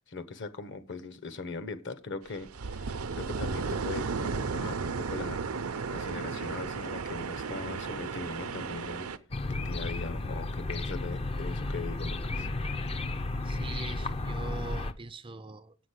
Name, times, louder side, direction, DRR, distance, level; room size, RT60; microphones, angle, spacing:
voice 1, 0.0-9.1 9.5-12.5, left 3 dB, 55° left, 1.1 m, -40 dB
sound 1, 2.3-9.2, right 4 dB, 75° right, 0.7 m, -34 dB
sound 2, 9.3-14.9, left 2 dB, 25° left, 0.5 m, -33 dB
voice 2, 13.4-15.8, right 4 dB, 25° right, 0.4 m, -42 dB
8.2 x 6.3 x 8.2 m
head